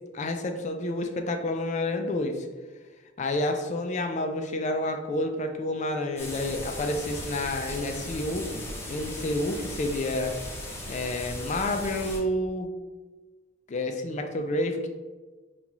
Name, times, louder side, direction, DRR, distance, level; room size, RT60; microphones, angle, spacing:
voice 1, 0.1-2.5 3.2-10.3 10.9-12.7 13.7-14.9, left 1 dB, 35° left, 5 dB, 0.4 m, -29 dB
sound 1, 6.2-12.2, left 1 dB, 10° left, 0.7 m, -37 dB
5.4 x 2.4 x 2.9 m, 1.3 s
head